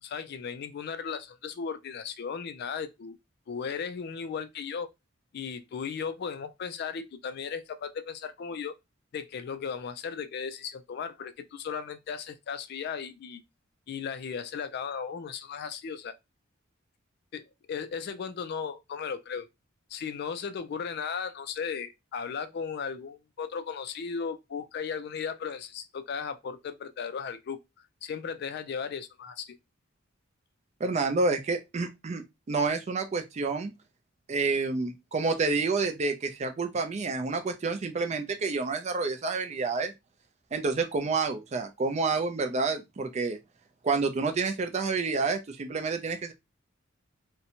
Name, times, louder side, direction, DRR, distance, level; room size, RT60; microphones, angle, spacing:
voice 1, 0.0-3.2 3.5-4.9 5.3-8.7 9.1-13.4 13.9-16.1 17.3-19.5 19.9-27.6 28.0-29.6, left 6 dB, 50° left, 0.3 m, -36 dB
voice 2, 30.8-32.2 32.5-33.7 34.3-39.9 40.5-43.4 43.8-46.3, right 4 dB, 35° right, 0.4 m, -29 dB
2.6 x 2.1 x 2.8 m
head